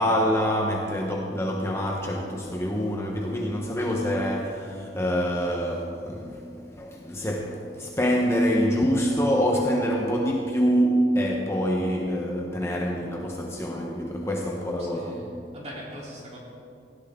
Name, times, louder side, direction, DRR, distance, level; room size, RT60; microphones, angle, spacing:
voice 1, 0.0-15.2, equal, 15° left, -1 dB, 1.2 m, -26 dB
voice 2, 14.8-16.4, equal, 35° right, -4 dB, 3.7 m, -41 dB
18.0 x 16.0 x 3.9 m, 2.5 s
head